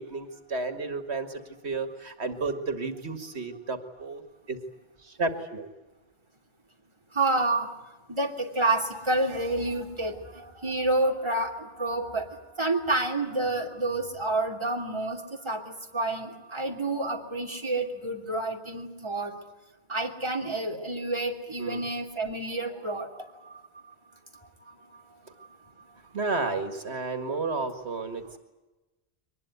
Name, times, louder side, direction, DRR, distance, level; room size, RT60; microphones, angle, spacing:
voice 1, 0.0-4.2 4.5-4.6 5.0-5.7 21.6-21.9 26.1-28.4, right 3 dB, 85° right, 8 dB, 2.2 m, -32 dB
voice 2, 7.1-7.7 8.1-19.3 19.9-23.5 24.3-25.0, right 2 dB, 25° right, 2 dB, 3.0 m, -29 dB
23.5 x 20.5 x 9.4 m, 1.1 s
omnidirectional pair, 1.1 m